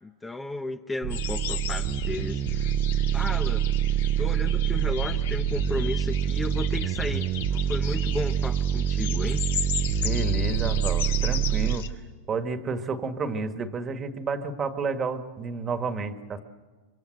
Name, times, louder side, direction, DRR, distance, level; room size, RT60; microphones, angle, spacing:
voice 1, 0.0-2.7 3.1-3.6 4.2-9.4, left 2 dB, 10° left, 6 dB, 0.9 m, -34 dB
sound 1, 1.0-11.8, right 9 dB, 45° right, 1.0 m, -26 dB
sound 2, 1.1-11.9, left 9 dB, 85° left, 1.9 m, -37 dB
voice 2, 10.0-11.9 12.3-16.4, right 4 dB, 25° right, 8 dB, 1.7 m, -31 dB
25.5 x 24.0 x 7.9 m, 1.4 s
supercardioid pair, 125°, 0 cm